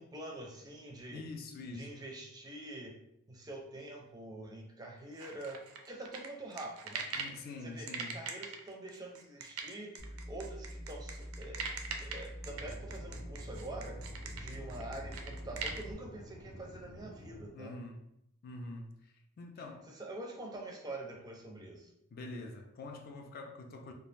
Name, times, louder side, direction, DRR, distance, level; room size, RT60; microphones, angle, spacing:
voice 1, 0.0-1.2 1.7-2.9 3.3-7.1 7.6-11.7 12.0-14.1 14.3-17.8 19.9-21.9, right 2 dB, 20° right, 0.4 m, -46 dB
voice 2, 1.1-2.0 7.1-8.2 17.5-18.0 18.4-20.0 22.1-23.9, left 2 dB, 45° left, 0.3 m, -45 dB
sound 1, 5.2-7.4 7.9-15.8, right 5 dB, 80° right, 0.4 m, -41 dB
sound 2, 10.0-15.9, equal, 10° left, 0.7 m, -45 dB
Aircraft / Engine, 12.5-17.5, equal, 85° left, 0.6 m, -51 dB
2.3 x 2.1 x 3.2 m
head